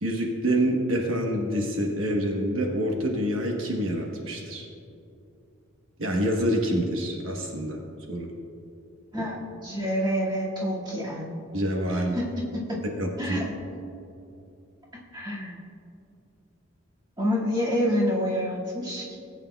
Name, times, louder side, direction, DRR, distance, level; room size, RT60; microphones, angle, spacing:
voice 1, 0.0-4.7 6.0-7.8 8.1-8.3 11.5-12.2 13.0-13.4, equal, 70° right, 0 dB, 1.1 m, -26 dB
voice 2, 9.1-11.4 11.9-12.3 12.7-12.8 13.2-13.5 15.1-15.6 17.2-19.2, equal, 20° right, -6 dB, 2.0 m, -28 dB
18.5 x 8.6 x 2.3 m, 2.7 s
head